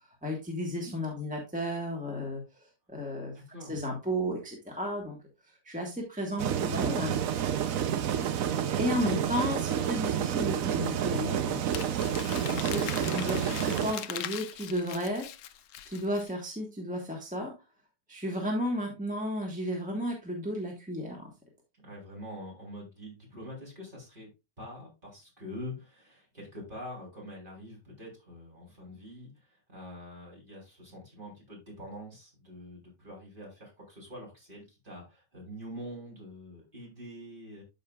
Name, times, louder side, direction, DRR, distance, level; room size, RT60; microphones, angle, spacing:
voice 1, 0.2-3.3 3.7-5.2 5.5-7.2 8.8-11.6 12.4-15.3 15.8-17.5 18.1-21.3, equal, 5° right, -1 dB, 1.5 m, -33 dB
voice 2, 3.3-3.8 21.8-24.3 24.6-29.3 29.7-37.6, equal, 35° right, -3 dB, 3.9 m, -45 dB
sound 1, 6.4-13.9, right 9 dB, 75° right, 1.2 m, -29 dB
Crumpling crinkling, 11.7-16.3, left 11 dB, 70° left, 0.9 m, -40 dB
12.5 x 5.1 x 2.4 m, 0.27 s
omnidirectional pair, 1.5 m